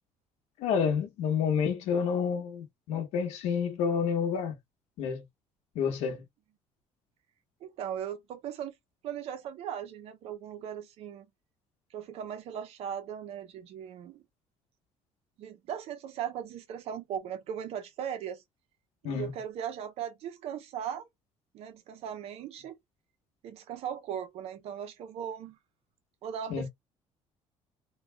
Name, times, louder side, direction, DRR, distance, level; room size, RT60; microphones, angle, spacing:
voice 1, 0.6-4.6 5.0-5.2 5.7-6.2 19.0-19.3 26.5-26.7, left 7 dB, 90° left, 1.2 m, -29 dB
voice 2, 7.6-8.7 9.0-11.3 11.9-14.2 15.4-18.4 19.0-21.1 21.5-22.8 23.4-25.6 26.2-26.7, right 9 dB, 65° right, 0.8 m, -38 dB
3.2 x 2.4 x 3.4 m
cardioid pair, 145°, 11 cm